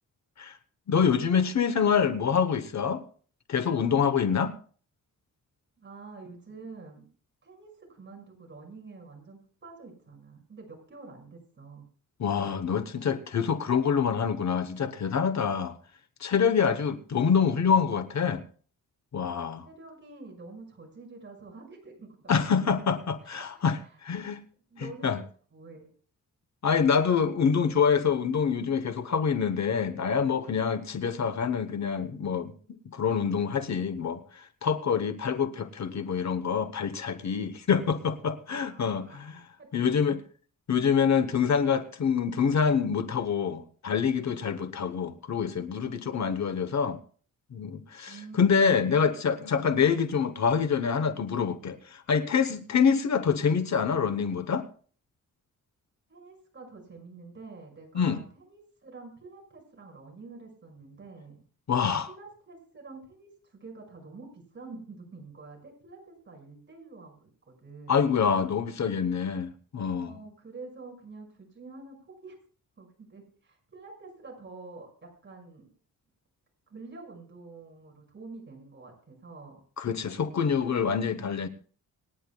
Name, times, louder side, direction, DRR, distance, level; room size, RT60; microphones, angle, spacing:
voice 1, 0.9-3.0 3.5-4.6 12.2-15.8 16.2-18.4 19.1-19.7 22.3-24.4 25.0-25.2 26.6-32.5 32.8-39.4 39.7-40.2 40.7-47.0 47.5-54.7 57.9-58.2 61.7-62.1 67.9-70.2 79.8-81.5, left 6 dB, 55° left, 1.0 m, -26 dB
voice 2, 5.8-7.1 7.4-11.9 19.6-22.4 23.2-24.3 24.7-25.2 25.5-25.9 38.7-39.2 39.6-39.9 48.1-48.4 56.1-61.4 62.1-68.1 70.0-72.4 72.8-75.7 76.7-79.6 80.3-81.3, right 3 dB, 35° right, 5.7 m, -47 dB
26.5 x 10.0 x 2.3 m
wide cardioid pair, 135°, 33 cm